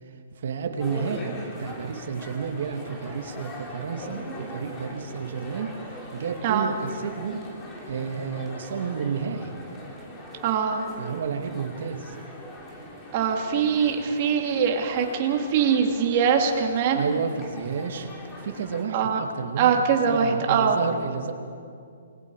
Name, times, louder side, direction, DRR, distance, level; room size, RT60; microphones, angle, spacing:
voice 1, 0.4-5.7 6.1-7.4 7.8-9.6 11.0-12.2 16.9-18.1 18.4-21.3, right 6 dB, 65° right, 4 dB, 2.4 m, -31 dB
sound 1, 0.8-18.8, left 1 dB, 15° left, 3.3 m, -41 dB
voice 2, 10.4-10.8 13.1-17.0 18.9-19.2 19.6-20.8, right 7 dB, 40° right, 2 dB, 2.7 m, -22 dB
28.0 x 21.0 x 5.0 m, 2.4 s
hypercardioid pair, 155°, 0 cm